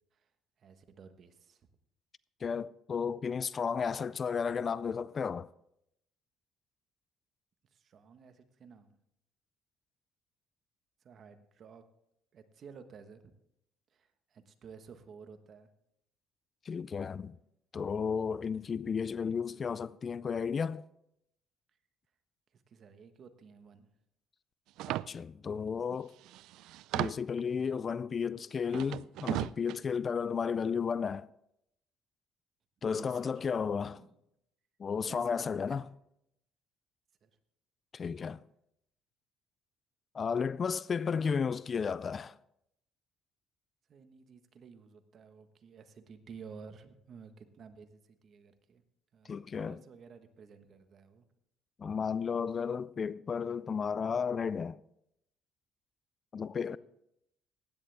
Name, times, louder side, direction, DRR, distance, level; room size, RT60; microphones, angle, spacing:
voice 1, 0.6-1.6 7.7-8.9 11.0-11.8 12.3-13.3 13.9-15.7 22.5-23.9 32.9-33.5 33.9-34.2 35.1-35.8 37.2-37.3 43.9-48.8 49.1-51.2 56.7-56.8, right 6 dB, 50° right, 1.3 m, -53 dB
voice 2, 2.4-5.5 16.7-17.4 17.7-20.8 25.1-26.1 26.9-31.3 32.8-34.0 34.8-35.8 37.9-38.4 40.1-42.3 49.3-49.8 51.8-54.8 56.3-56.8, left 6 dB, 35° left, 0.3 m, -33 dB
sound 1, 24.8-25.1 25.9-26.0 26.2-27.4 28.7-29.7, right 15 dB, 80° right, 0.3 m, -35 dB
15.5 x 10.5 x 3.5 m
cardioid pair, 105°, 0 cm